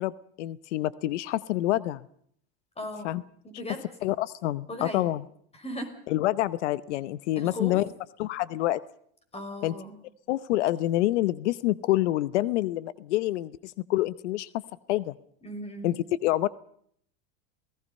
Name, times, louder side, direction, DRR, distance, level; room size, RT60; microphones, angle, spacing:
voice 1, 0.0-2.0 3.0-3.2 4.0-5.3 6.1-7.9 8.2-8.8 9.6-9.7 10.3-14.5 14.9-15.1 15.8-16.5, left 15 dB, 90° left, 17 dB, 0.9 m, -27 dB
voice 2, 2.8-3.1 3.4-3.8 4.7-5.0 5.6-5.9 7.4-7.7 9.3-10.0 15.4-15.9, left 1 dB, 20° left, 8 dB, 5.8 m, -36 dB
29.0 x 18.5 x 5.4 m, 0.64 s
supercardioid pair, 120°, 34 cm